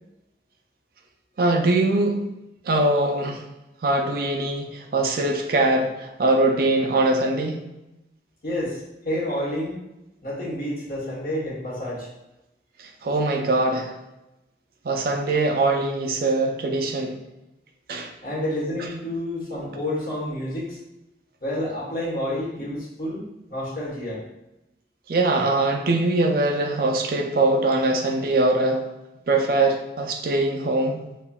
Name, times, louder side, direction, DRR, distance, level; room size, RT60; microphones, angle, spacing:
voice 1, 1.4-2.2 2.6-3.4 3.8-7.6 12.8-13.9 14.8-17.2 17.9-18.1 25.1-28.8 29.3-31.0, right 2 dB, 55° right, 2 dB, 0.4 m, -22 dB
voice 2, 8.4-8.8 9.0-9.8 10.2-12.1 18.2-20.7 21.4-24.2, left 1 dB, 50° left, -6 dB, 1.1 m, -29 dB
5.4 x 2.2 x 2.3 m, 0.92 s
head